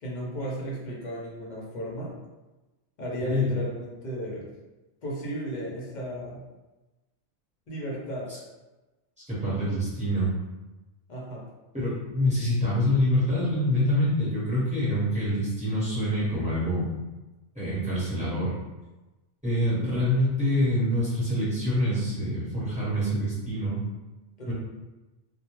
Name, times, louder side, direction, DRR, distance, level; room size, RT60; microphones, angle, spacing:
voice 1, 0.0-2.1 3.0-4.5 5.0-6.4 7.7-8.3 11.1-11.5 24.4-24.5, right 1 dB, 50° left, -4 dB, 0.6 m, -34 dB
voice 2, 3.2-3.5 8.3-8.4 9.3-10.3 11.7-16.9 17.5-18.5 19.4-23.8 24.5-24.6, left 1 dB, 5° right, -10 dB, 0.8 m, -26 dB
2.2 x 2.2 x 2.9 m, 1.1 s
omnidirectional pair, 1.2 m